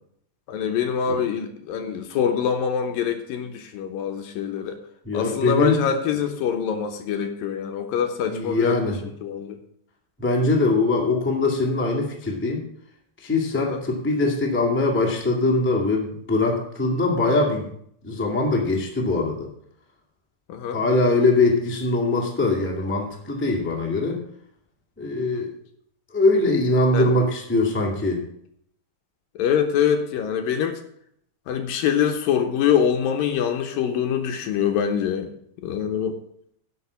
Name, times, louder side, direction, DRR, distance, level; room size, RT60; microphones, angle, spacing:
voice 1, 0.5-4.8 5.1-8.8 9.2-9.6 13.5-13.8 20.5-20.8 25.3-25.4 26.9-27.1 29.4-30.8 31.5-35.3 35.6-36.2, left 8 dB, 70° left, 6 dB, 2.4 m, -24 dB
voice 2, 5.0-5.9 8.2-9.0 10.2-12.6 13.2-17.7 18.0-19.5 20.7-24.2 25.0-25.5 26.1-28.2, left 2 dB, 10° left, -1 dB, 0.6 m, -22 dB
11.0 x 5.9 x 8.2 m, 0.69 s
omnidirectional pair, 4.6 m